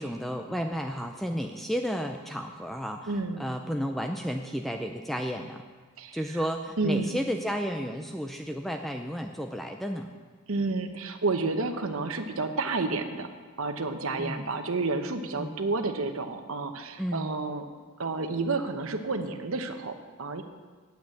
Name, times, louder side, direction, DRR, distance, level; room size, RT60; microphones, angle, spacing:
voice 1, 0.0-5.6 6.1-10.1 14.2-14.5 15.4-15.5 17.0-17.3, equal, ahead, 4 dB, 0.4 m, -32 dB
voice 2, 3.1-3.4 6.0-6.2 6.8-7.2 10.5-13.3 13.6-17.6 18.0-20.4, right 3 dB, 70° right, 7 dB, 1.0 m, -30 dB
9.1 x 8.2 x 8.4 m, 1.5 s
head